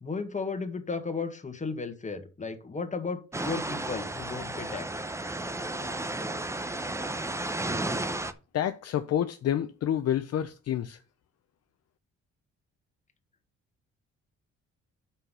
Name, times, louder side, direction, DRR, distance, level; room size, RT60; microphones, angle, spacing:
voice 1, 0.0-5.1, left 4 dB, 25° left, 1.7 m, -34 dB
sound 1, 3.3-8.3, right 2 dB, 10° right, 0.7 m, -33 dB
voice 2, 8.5-11.0, left 10 dB, 55° left, 0.6 m, -28 dB
5.8 x 5.5 x 6.8 m
cardioid pair, 90°, 30 cm